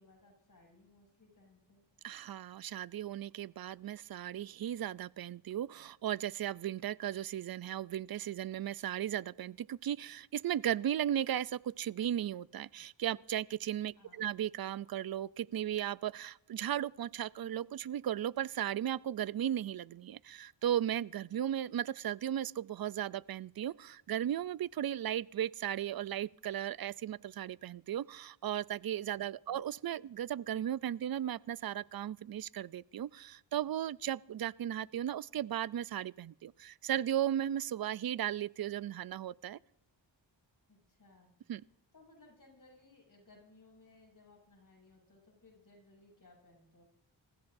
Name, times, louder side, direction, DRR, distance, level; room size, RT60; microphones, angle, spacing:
voice 1, 0.0-1.8 14.0-14.3 29.2-29.6 40.7-41.3 41.9-46.8, left 2 dB, 45° left, 7.9 m, -62 dB
voice 2, 2.0-39.6 41.5-41.6, right 11 dB, 50° right, 0.5 m, -36 dB
27.0 x 15.5 x 2.6 m
cardioid pair, 55°, 45 cm